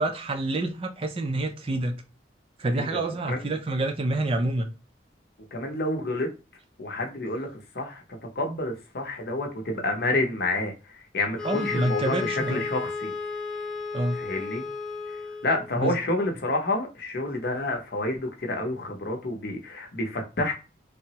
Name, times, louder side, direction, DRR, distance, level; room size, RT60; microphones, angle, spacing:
voice 1, 0.0-2.0 2.6-4.7 11.4-12.7 13.9-14.2 15.8-16.0, right 2 dB, 30° right, 0.3 m, -27 dB
voice 2, 2.8-3.5 5.5-6.3 6.8-7.5 7.7-8.0 8.4-13.1 14.1-14.7 15.4-20.5, left 2 dB, 55° left, 0.7 m, -29 dB
sound 1, 11.4-15.8, left 4 dB, 5° left, 0.9 m, -33 dB
3.3 x 2.0 x 2.8 m
head